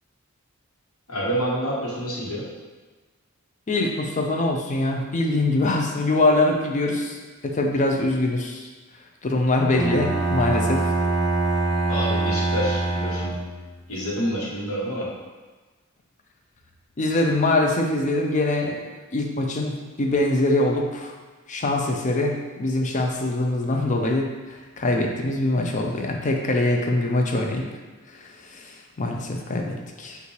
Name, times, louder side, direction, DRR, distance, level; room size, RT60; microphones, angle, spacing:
voice 1, 1.1-2.4 11.9-13.3 13.9-15.1, equal, 80° left, -5 dB, 1.2 m, -27 dB
voice 2, 3.7-7.2 7.4-8.7 9.2-10.8 17.0-21.1 21.5-27.6 28.1-30.2, left 2 dB, 35° left, 2 dB, 0.5 m, -23 dB
Bowed string instrument, 9.7-13.7, right 2 dB, ahead, 0.7 m, -24 dB
5.4 x 2.5 x 3.2 m, 1.3 s
head